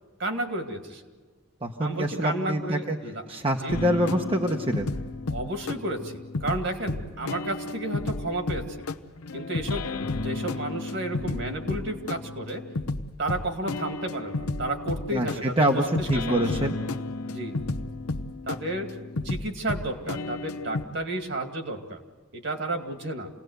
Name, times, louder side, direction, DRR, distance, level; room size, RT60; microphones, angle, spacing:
voice 1, 0.2-1.0 1.8-3.2 3.6-3.8 5.3-8.9 9.3-9.9 10.2-12.6 13.2-16.7 17.3-17.6 18.5-19.0 19.2-22.0 22.3-23.3, right 1 dB, 55° right, 5 dB, 2.2 m, -32 dB
voice 2, 1.6-3.0 3.3-4.9 15.1-16.7, right 1 dB, 25° right, 2 dB, 1.0 m, -25 dB
sound 1, 3.7-20.8, left 2 dB, 85° left, 0.8 m, -32 dB
27.5 x 18.5 x 8.0 m, 1.5 s
head